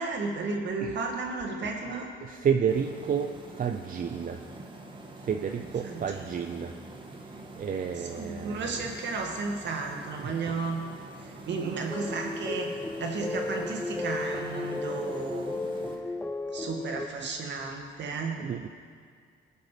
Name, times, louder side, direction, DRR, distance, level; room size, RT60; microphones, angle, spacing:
voice 1, 0.0-2.1 5.8-6.0 8.1-10.9 11.2-12.7 13.0-15.5 16.5-18.4, right 4 dB, 65° right, 1 dB, 2.1 m, -33 dB
voice 2, 1.6-4.5 5.2-6.8 7.2-8.8 10.2-10.4 17.2-17.3 18.4-18.7, right 7 dB, 45° right, 5 dB, 0.6 m, -31 dB
sound 1, 2.7-16.0, right 2 dB, 25° right, 1.7 m, -46 dB
sound 2, 11.9-17.1, left 2 dB, 10° left, 0.4 m, -34 dB
19.5 x 6.9 x 5.1 m, 2.1 s
cardioid pair, 90°, 20 cm